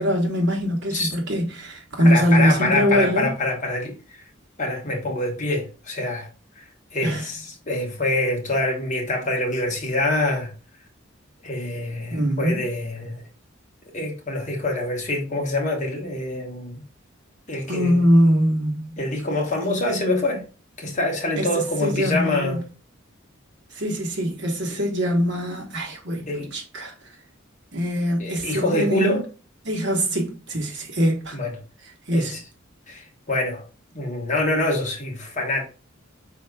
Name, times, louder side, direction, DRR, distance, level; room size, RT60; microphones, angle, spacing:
voice 1, 0.0-3.3 7.0-7.3 12.1-12.6 17.7-19.0 21.4-22.6 23.7-26.9 27.7-29.2 29.6-31.4 32.1-32.4, equal, 60° right, 1.2 m, -22 dB
voice 2, 2.0-4.2 4.6-6.3 6.6-6.7 6.9-10.5 11.4-13.2 13.9-16.8 17.5-18.0 19.0-20.4 20.8-22.6 26.1-26.5 28.2-29.2 31.3-31.6 32.1-32.4 32.9-33.6 33.9-35.6, left 2 dB, 35° left, 1.2 m, -25 dB
5.1 x 4.2 x 2.3 m
head